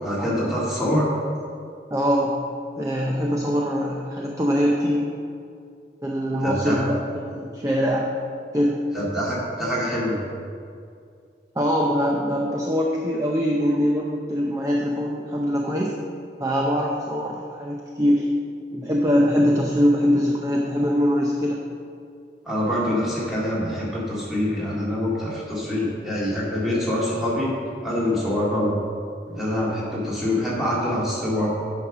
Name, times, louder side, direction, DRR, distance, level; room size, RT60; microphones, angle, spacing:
voice 1, 0.0-1.1 6.4-6.8 8.9-10.2 22.5-27.5 27.8-28.7 29.3-31.6, left 1 dB, ahead, -7 dB, 2.1 m, -25 dB
voice 2, 1.9-2.4 2.8-5.1 6.0-7.0 7.3-8.1 8.5-8.8 11.6-16.0 16.4-18.3 18.7-21.6, equal, 20° right, -1 dB, 0.6 m, -22 dB
8.7 x 5.4 x 6.1 m, 2.3 s
head